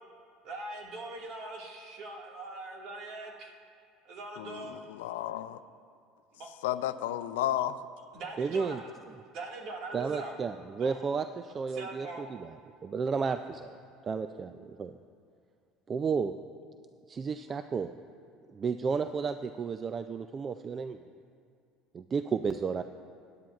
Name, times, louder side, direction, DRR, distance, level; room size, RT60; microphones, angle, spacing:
voice 1, 0.4-3.5 4.0-4.8 6.4-6.5 8.1-8.9 9.3-10.3 10.8-11.1 11.7-12.3, right 2 dB, 60° right, 0 dB, 1.8 m, -41 dB
voice 2, 4.4-5.6 6.6-7.8, left 12 dB, 90° left, 13 dB, 0.4 m, -32 dB
voice 3, 8.4-8.8 9.9-12.5 12.8-13.7 14.0-14.9 15.9-16.3 17.1-17.9 18.5-21.0 21.9-22.8, right 5 dB, 30° right, 9 dB, 0.3 m, -32 dB
16.5 x 10.5 x 2.4 m, 2.3 s
supercardioid pair, 105°, 0 cm